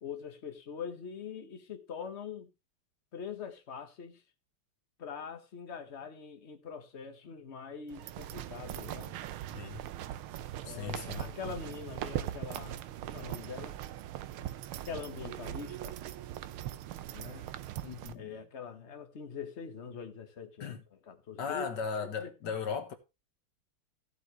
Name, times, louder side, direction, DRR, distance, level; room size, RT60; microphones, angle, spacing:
voice 1, 0.0-2.5 3.1-4.2 5.0-9.2 10.6-13.8 14.8-16.0 17.1-17.5 18.1-21.7 22.2-22.5, left 6 dB, 35° left, 1.5 m, -43 dB
sound 1, 7.9-18.1, right 12 dB, 80° right, 1.6 m, -40 dB
voice 2, 9.5-9.8 10.7-11.6 17.8-18.4 20.6-20.8 21.4-22.9, left 6 dB, 55° left, 2.1 m, -37 dB
14.5 x 8.0 x 3.2 m
omnidirectional pair, 2.4 m